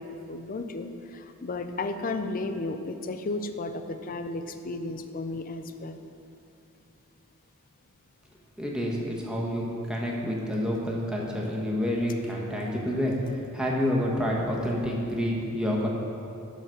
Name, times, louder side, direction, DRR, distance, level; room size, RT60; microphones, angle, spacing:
voice 1, 0.0-6.0, left 2 dB, 40° left, 8 dB, 0.5 m, -34 dB
voice 2, 8.6-15.9, equal, 5° right, -3 dB, 1.2 m, -28 dB
12.0 x 4.1 x 6.3 m, 2.8 s
head